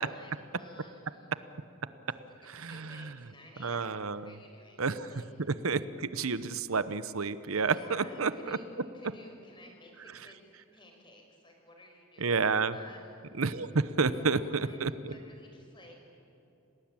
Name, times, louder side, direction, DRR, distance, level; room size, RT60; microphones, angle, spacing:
voice 1, 0.0-1.3 2.6-5.6 7.7-10.4 10.7-13.2 14.2-16.0, left 1 dB, 25° left, 2 dB, 5.2 m, -55 dB
voice 2, 2.5-3.1 3.6-4.3 4.8-5.1 5.6-8.6 12.2-12.7 13.4-15.1, right 4 dB, 90° right, 14 dB, 0.9 m, -30 dB
28.5 x 19.0 x 8.9 m, 2.9 s
head